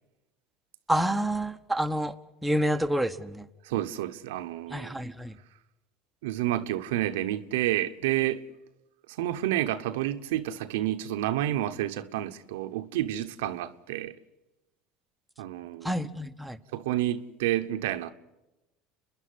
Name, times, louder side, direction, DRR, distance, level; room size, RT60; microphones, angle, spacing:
voice 1, 0.9-2.1 2.4-3.5 4.7-5.4 15.8-16.6, right 1 dB, 5° right, 1.1 m, -28 dB
voice 2, 3.6-4.9 6.2-8.4 9.2-14.1 15.4-15.9 16.7-18.1, right 13 dB, 80° right, 0.9 m, -29 dB
30.0 x 11.0 x 9.5 m
hypercardioid pair, 90°, 0 cm